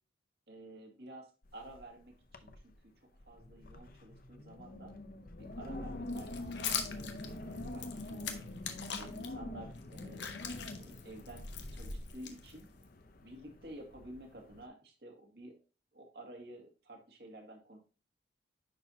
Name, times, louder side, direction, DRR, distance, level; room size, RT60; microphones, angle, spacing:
voice 1, 0.5-2.7 3.2-4.9 5.4-8.4 9.0-10.3 10.8-11.5 11.7-12.7 13.2-15.6 15.9-17.8, right 1 dB, 60° right, 3 dB, 2.0 m, -51 dB
Wind, 1.4-1.9 2.2-2.7 3.2-14.6, left 1 dB, 50° left, 0.7 m, -45 dB
sound 1, 6.1-9.3 9.8-12.8, left 8 dB, 75° left, 1.1 m, -42 dB
10.5 x 4.6 x 2.8 m, 0.34 s
head